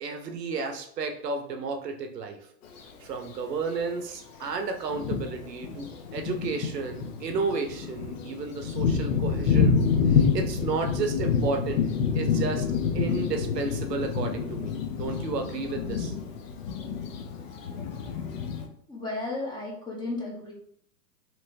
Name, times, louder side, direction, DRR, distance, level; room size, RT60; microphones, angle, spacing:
voice 1, 0.0-2.4 3.0-9.8 10.1-11.8 12.1-12.6 12.9-16.1, right 4 dB, 80° right, 6 dB, 0.7 m, -32 dB
Thunder, 2.6-2.8 3.7-3.8 4.4-4.5 4.9-18.7, left 6 dB, 55° left, 0.7 m, -28 dB
voice 2, 18.9-20.5, left 2 dB, 10° left, -5 dB, 0.8 m, -34 dB
3.0 x 2.9 x 2.6 m, 0.65 s
hypercardioid pair, 115°, 48 cm